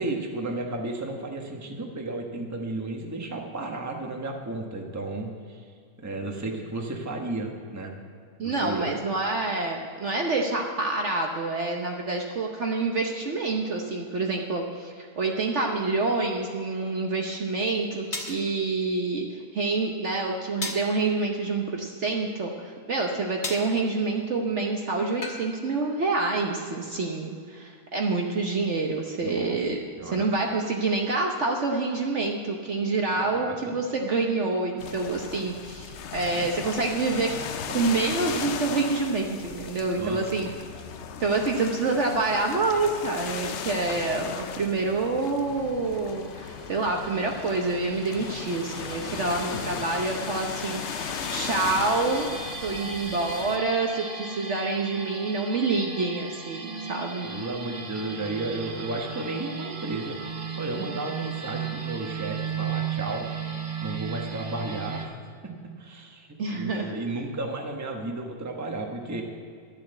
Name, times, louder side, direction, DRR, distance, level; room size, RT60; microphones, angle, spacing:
voice 1, 0.0-5.7 6.0-7.9 8.4-8.9 29.2-29.6 30.0-30.2 33.1-33.5 39.9-40.2 49.5-49.6 50.0-50.3 57.2-60.2 60.6-63.3 63.5-69.2, right 2 dB, 10° right, 1 dB, 1.0 m, -33 dB
voice 2, 8.4-29.8 30.1-37.3 37.7-40.5 40.8-40.9 41.2-50.8 51.3-52.3 52.6-57.3 66.4-66.9, right 3 dB, 50° right, 1 dB, 1.1 m, -27 dB
sound 1, 18.1-18.4 20.6-20.9 23.4-23.7 25.2-25.5, left 2 dB, 30° left, 1.4 m, -33 dB
sound 2, 34.8-53.6, left 7 dB, 60° left, 0.7 m, -36 dB
sound 3, 45.4-65.1, right 6 dB, 35° right, 0.8 m, -37 dB
12.0 x 7.3 x 7.9 m, 2.2 s
omnidirectional pair, 1.7 m